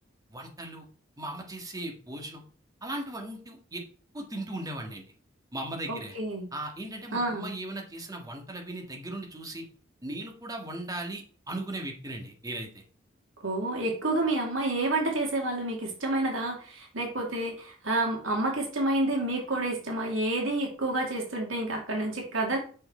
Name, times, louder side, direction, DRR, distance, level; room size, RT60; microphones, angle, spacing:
voice 1, 0.3-0.9 1.2-2.4 2.8-3.8 4.1-5.1 5.5-6.2 6.5-9.7 10.0-12.8, right 1 dB, 20° right, 2 dB, 1.7 m, -37 dB
voice 2, 5.9-6.5 7.1-7.5 13.4-22.6, right 2 dB, 85° right, 1 dB, 2.5 m, -29 dB
7.6 x 5.8 x 4.4 m, 0.40 s
head